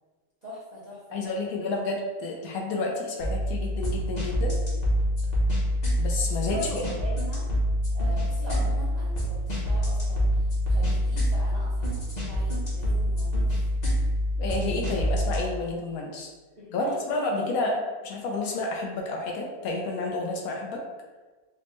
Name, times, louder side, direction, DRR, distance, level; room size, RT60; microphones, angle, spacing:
voice 1, 0.4-1.3 6.3-7.5 7.9-13.5 16.6-17.8, left 1 dB, 45° right, -8 dB, 0.6 m, -41 dB
voice 2, 1.1-4.6 6.0-6.8 14.4-16.3 16.7-17.7 18.0-20.8, left 3 dB, 75° left, 0 dB, 1.0 m, -30 dB
sound 1, 3.2-15.4, equal, 35° left, 0.8 m, -26 dB
4.2 x 2.1 x 3.0 m, 1.3 s
omnidirectional pair, 1.6 m